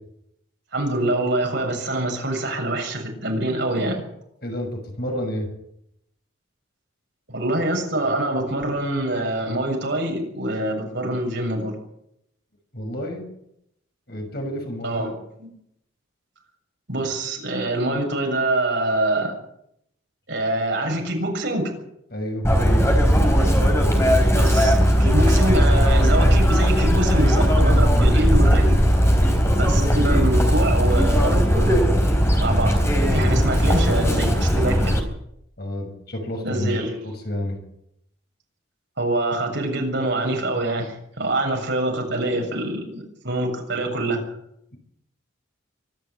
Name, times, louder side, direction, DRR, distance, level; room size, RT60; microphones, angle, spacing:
voice 1, 0.7-4.0 7.3-11.7 14.8-15.5 16.9-19.3 20.3-21.7 24.3-28.8 29.5-31.8 32.4-32.7 33.1-35.0 36.4-37.1 39.0-44.2, right 1 dB, 55° right, 2 dB, 7.2 m, -25 dB
voice 2, 4.4-5.5 12.7-13.2 14.1-15.1 22.1-22.5 35.6-36.8 37.0-37.6, equal, 50° left, 3 dB, 6.5 m, -30 dB
Chirp tweet, 22.4-35.0, equal, 15° left, 3.9 m, -18 dB
24.5 x 12.0 x 9.6 m, 0.77 s
head